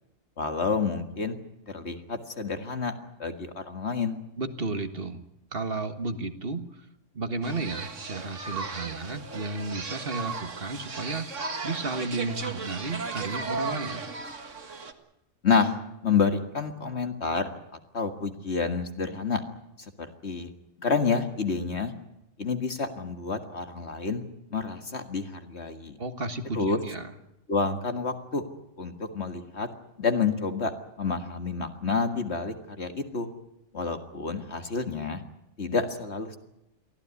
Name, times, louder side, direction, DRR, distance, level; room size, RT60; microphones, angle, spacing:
voice 1, 0.4-1.4 1.7-2.9 3.2-4.2 15.4-17.5 17.9-19.4 20.0-20.5 20.8-21.9 22.4-24.2 24.5-26.0 26.5-26.8 27.5-28.4 28.8-29.7 30.0-30.7 31.0-33.3 33.7-35.2 35.6-36.4, left 5 dB, 60° left, 7 dB, 2.1 m, -29 dB
voice 2, 4.4-5.2 5.5-6.7 7.2-14.1 26.0-27.1, right 3 dB, 50° right, 8 dB, 1.8 m, -33 dB
sound 1, 7.4-14.9, right 4 dB, 75° right, 2.1 m, -36 dB
23.5 x 16.0 x 9.7 m, 0.85 s
omnidirectional pair, 1.3 m